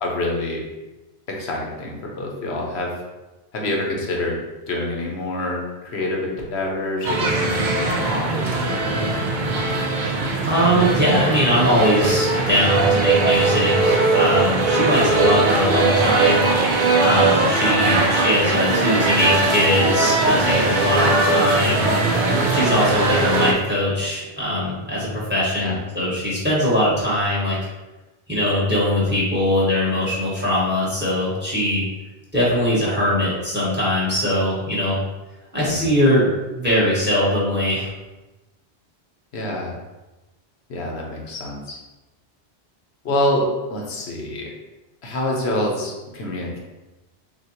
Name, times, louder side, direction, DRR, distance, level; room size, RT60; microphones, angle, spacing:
voice 1, 0.0-0.6 1.3-3.0 3.5-4.4 4.7-9.2 17.7-18.0 21.6-21.9 25.6-25.8 35.6-35.9 39.3-39.8 40.7-41.8 43.0-44.5 45.0-46.6, left 1 dB, 80° left, -1 dB, 1.1 m, -26 dB
sound 1, 7.0-23.5, right 3 dB, 55° right, 0.7 m, -20 dB
voice 2, 10.4-16.5 17.0-21.9 22.5-27.6 28.3-31.8 32.3-35.0 35.5-36.3 36.5-37.9, equal, 10° right, -7 dB, 1.3 m, -21 dB
6.1 x 2.5 x 2.9 m, 1.1 s
omnidirectional pair, 1.1 m